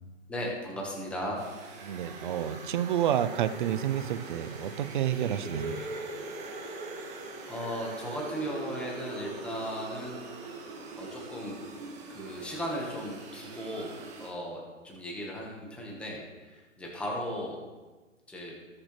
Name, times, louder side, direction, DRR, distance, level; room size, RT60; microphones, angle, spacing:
voice 1, 0.3-1.4 7.5-10.3 11.0-11.6 12.1-17.6 18.3-18.5, equal, 5° left, -2 dB, 1.4 m, -37 dB
sound 1, 1.4-14.3, right 3 dB, 15° right, 2.0 m, -41 dB
voice 2, 1.8-5.8, right 10 dB, 40° right, 12 dB, 0.6 m, -29 dB
20.0 x 6.6 x 3.3 m, 1.3 s
hypercardioid pair, 150°, 39 cm